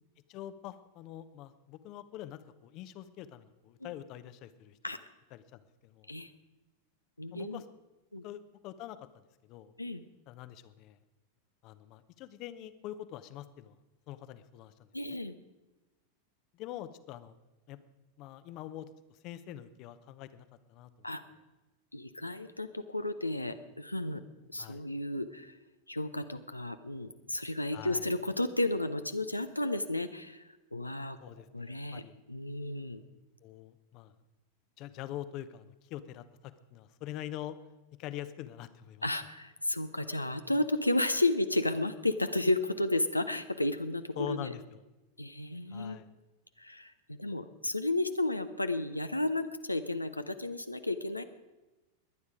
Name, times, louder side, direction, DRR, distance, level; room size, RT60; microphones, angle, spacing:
voice 1, 0.3-4.8 5.3-6.1 7.3-7.6 8.2-9.2 9.5-9.7 10.3-11.0 11.6-13.8 14.1-14.7 15.1-15.2 16.5-17.3 17.7-17.8 18.2-21.1 24.6-24.8 27.7-28.1 31.2-32.2 33.4-34.1 34.8-37.6 38.0-39.1 44.2-44.8 45.7-46.1, left 12 dB, 40° left, 13 dB, 0.8 m, -44 dB
voice 2, 7.2-7.6 8.1-8.2 9.8-10.0 14.9-15.4 21.0-21.2 21.9-24.2 24.5-25.6 25.9-31.2 31.5-33.0 39.0-44.5 45.2-46.0 46.6-51.2, left 2 dB, 85° left, 9 dB, 0.6 m, -33 dB
21.5 x 9.6 x 5.0 m, 1.1 s
figure-of-eight pair, 90°, 0 cm